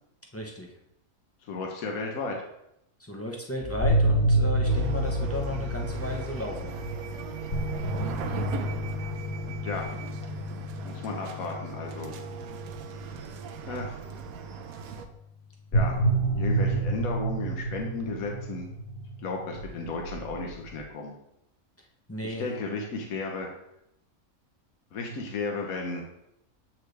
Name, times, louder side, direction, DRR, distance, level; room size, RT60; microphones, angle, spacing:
voice 1, 0.3-0.7 3.0-6.7 22.1-22.4, left 1 dB, 15° left, -1 dB, 0.6 m, -34 dB
voice 2, 1.4-2.5 9.5-9.9 10.8-12.1 13.7-13.9 15.7-16.0 16.3-18.7 19.2-21.1 22.2-23.5 24.9-26.0, left 3 dB, 75° left, 1 dB, 1.4 m, -34 dB
sound 1, 3.6-13.8 15.7-20.8, right 1 dB, 45° left, 1.3 m, -29 dB
sound 2, 4.6-15.1, right 8 dB, 75° right, 1.1 m, -39 dB
7.7 x 4.5 x 3.3 m, 0.81 s
omnidirectional pair, 1.5 m